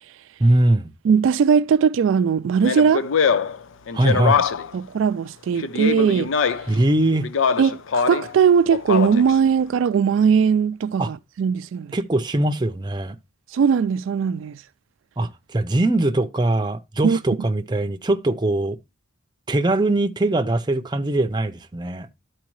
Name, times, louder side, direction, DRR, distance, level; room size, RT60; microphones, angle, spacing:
voice 1, 0.4-0.9 3.9-4.4 6.7-7.3 11.0-11.1 11.9-13.2 15.2-18.8 19.5-22.1, right 2 dB, 20° right, 0.6 m, -21 dB
voice 2, 1.0-3.1 4.7-6.3 7.6-12.0 13.5-14.6 17.0-17.2, right 6 dB, 75° right, 0.3 m, -19 dB
Speech, 2.6-4.8 5.6-6.8 7.2-8.3 8.7-9.4, left 6 dB, 80° left, 0.5 m, -23 dB
12.0 x 4.6 x 3.1 m
head